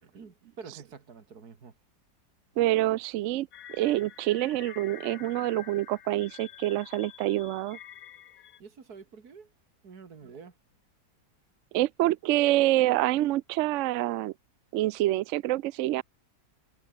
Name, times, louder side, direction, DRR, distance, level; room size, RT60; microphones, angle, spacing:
voice 1, 0.0-1.7 8.6-9.5 9.8-10.5, right 5 dB, 60° right, 2.7 m, -47 dB
voice 2, 2.6-7.8 11.7-14.3 14.7-16.0, right 15 dB, 90° right, 0.6 m, -26 dB
sound 1, 3.5-8.6, left 10 dB, 65° left, 1.4 m, -48 dB
omnidirectional pair, 1.9 m